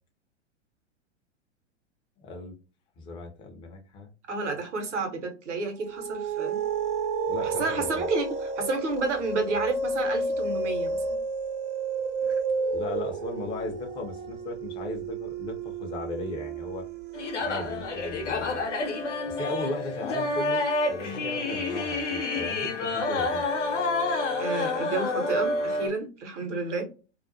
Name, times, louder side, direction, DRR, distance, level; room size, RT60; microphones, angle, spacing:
voice 1, 2.2-2.6 3.0-4.1 7.3-8.1 12.7-16.8 17.4-18.6 19.3-23.5, left 3 dB, 15° left, 3 dB, 0.4 m, -37 dB
voice 2, 4.3-6.6 7.4-11.0 12.3-12.4 21.0-21.2 24.4-26.8, right 3 dB, 70° right, 4 dB, 0.9 m, -30 dB
sound 1, 5.8-18.6, right 3 dB, 45° right, 0.5 m, -31 dB
sound 2, 17.1-25.9, left 2 dB, 75° left, 0.8 m, -28 dB
2.3 x 2.2 x 2.5 m, 0.33 s
figure-of-eight pair, 95°, 36 cm